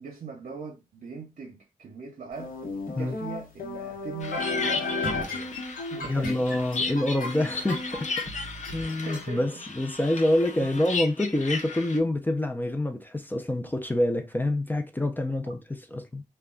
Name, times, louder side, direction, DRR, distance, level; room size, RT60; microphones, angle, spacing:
voice 1, 0.0-2.6 3.0-5.6 5.9-6.5 8.5-9.5 10.6-10.7 13.6-13.7, right 5 dB, 70° right, 0.7 m, -41 dB
sound 1, 2.4-9.2, left 3 dB, 80° left, 0.9 m, -34 dB
sound 2, 4.2-12.0, left 4 dB, 55° left, 0.6 m, -35 dB
voice 2, 6.0-8.2 8.7-9.5 9.8-16.2, left 1 dB, 15° left, 0.4 m, -27 dB
2.2 x 2.2 x 3.6 m
cardioid pair, 70°, 14 cm